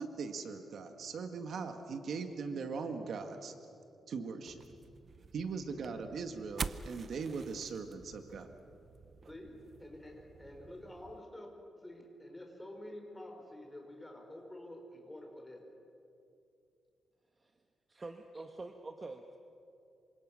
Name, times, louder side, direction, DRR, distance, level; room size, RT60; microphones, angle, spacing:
voice 1, 0.0-3.5 4.1-4.6 5.3-8.5, right 5 dB, 60° right, 6 dB, 1.7 m, -40 dB
sound 1, 4.5-11.2, right 5 dB, 40° right, 0.7 m, -47 dB
voice 2, 9.3-11.5 11.8-15.6, left 1 dB, 10° left, 2 dB, 4.5 m, -49 dB
voice 3, 17.9-19.4, right 3 dB, 25° right, 5 dB, 1.2 m, -46 dB
27.5 x 25.5 x 6.3 m, 2.6 s
wide cardioid pair, 140°, 0 cm